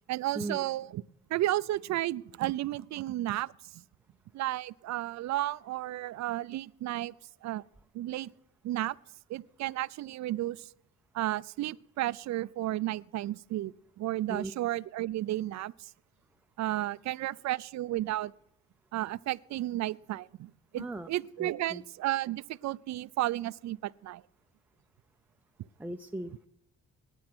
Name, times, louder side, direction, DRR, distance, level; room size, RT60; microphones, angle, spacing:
voice 1, 0.1-1.0 1.3-3.5 4.3-7.1 7.4-7.6 7.9-8.3 8.6-9.0 9.3-10.7 11.1-15.9 16.6-18.3 18.9-24.2, right 15 dB, 65° right, 20 dB, 0.5 m, -33 dB
voice 2, 20.8-21.1 21.4-21.8 25.8-26.3, right 2 dB, 5° right, 7 dB, 0.5 m, -37 dB
18.5 x 9.3 x 6.1 m, 0.79 s
cardioid pair, 90°, 30 cm